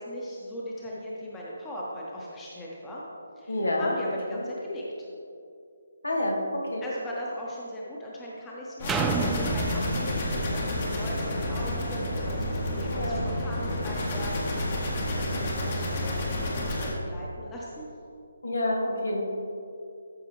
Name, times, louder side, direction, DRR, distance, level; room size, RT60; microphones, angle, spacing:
voice 1, 0.0-3.0 3.4-4.8 6.8-14.9 15.3-17.9, equal, 10° left, -5 dB, 1.1 m, -39 dB
voice 2, 3.5-3.9 4.3-4.4 6.0-6.8 12.9-13.2 18.4-19.2, left 1 dB, 75° left, -1 dB, 1.9 m, -28 dB
sound 1, 8.8-16.9, left 1 dB, 40° left, 1.7 m, -30 dB
sound 2, 8.9-12.7 13.2-13.3, right 4 dB, 10° right, 0.3 m, -32 dB
13.0 x 6.0 x 3.2 m, 2.5 s
figure-of-eight pair, 145°, 0 cm